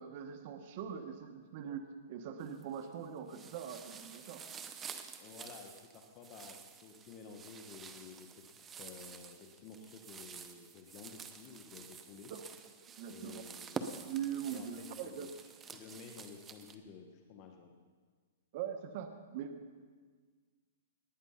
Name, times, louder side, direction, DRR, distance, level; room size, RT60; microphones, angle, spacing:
voice 1, 0.0-4.4 12.3-12.4 13.0-13.4 14.0-15.3 18.5-19.6, right 8 dB, 45° right, 7 dB, 1.1 m, -42 dB
sound 1, 2.4-2.9 3.3-16.8, right 6 dB, 15° right, 0.8 m, -49 dB
voice 2, 5.1-12.3 13.1-13.8 14.5-14.7 15.0-15.3 15.7-17.7, left 6 dB, 35° left, 3 dB, 1.2 m, -52 dB
19.0 x 9.7 x 5.7 m, 1.5 s
hypercardioid pair, 155°, 0 cm